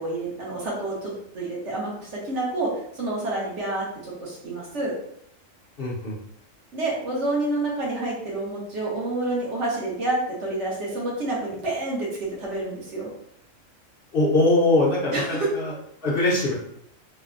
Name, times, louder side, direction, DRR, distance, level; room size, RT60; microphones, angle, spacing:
voice 1, 0.0-4.9 6.7-13.1 15.1-15.5, right 2 dB, 65° right, -5 dB, 1.2 m, -28 dB
voice 2, 5.8-6.1 14.1-15.7 16.0-16.5, left 2 dB, 50° left, -5 dB, 0.8 m, -21 dB
3.2 x 2.1 x 2.5 m, 0.70 s
omnidirectional pair, 1.4 m